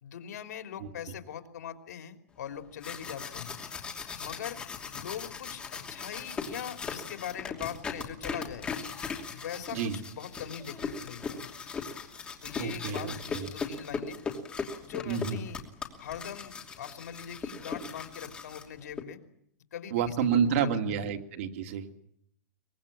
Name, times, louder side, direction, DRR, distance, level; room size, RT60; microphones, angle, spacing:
voice 1, 0.0-3.5 4.2-4.6 4.9-8.7 9.3-11.5 12.4-14.2 14.8-15.6 16.0-19.2 19.7-21.1, left 9 dB, 80° left, 7 dB, 3.4 m, -41 dB
sound 1, 2.6-19.0, left 5 dB, 10° left, 2.7 m, -39 dB
voice 2, 12.6-13.5 15.1-15.4 19.9-22.1, right 7 dB, 50° right, 4 dB, 2.5 m, -29 dB
24.0 x 21.5 x 8.7 m, 0.71 s
supercardioid pair, 175°, 9 cm